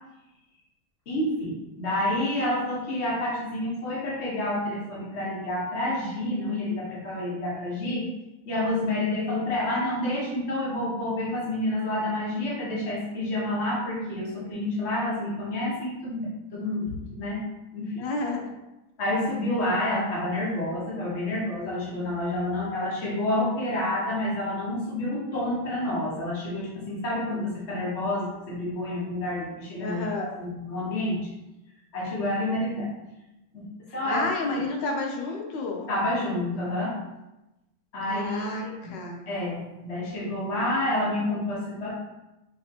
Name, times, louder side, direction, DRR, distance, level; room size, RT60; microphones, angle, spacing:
voice 1, 1.1-8.0 8.5-17.4 17.7-17.9 19.0-30.0 30.3-31.3 31.9-32.9 33.5-33.6 33.9-34.2 34.5-34.6 35.9-37.0 37.9-38.9 39.3-41.9, left 1 dB, 35° left, -6 dB, 1.3 m, -29 dB
voice 2, 18.0-18.5 29.8-30.3 34.0-35.9 38.1-39.2, left 2 dB, 65° left, 1 dB, 1.2 m, -30 dB
5.7 x 3.2 x 2.9 m, 0.97 s
omnidirectional pair, 2.3 m